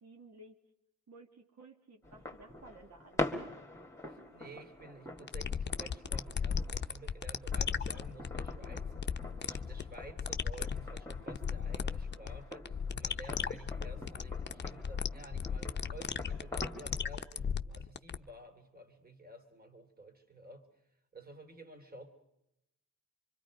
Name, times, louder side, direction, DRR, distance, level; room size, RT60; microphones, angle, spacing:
voice 1, 0.0-0.6 1.1-3.5, right 2 dB, 65° right, 4 dB, 1.9 m, -56 dB
sound 1, 2.0-17.1, left 2 dB, 10° left, 2.0 m, -45 dB
voice 2, 4.0-22.1, right 2 dB, 30° right, 6 dB, 3.0 m, -52 dB
sound 2, 5.2-18.2, left 6 dB, 40° left, 0.8 m, -36 dB
25.5 x 25.0 x 5.1 m, 0.82 s
wide cardioid pair, 115°, 29 cm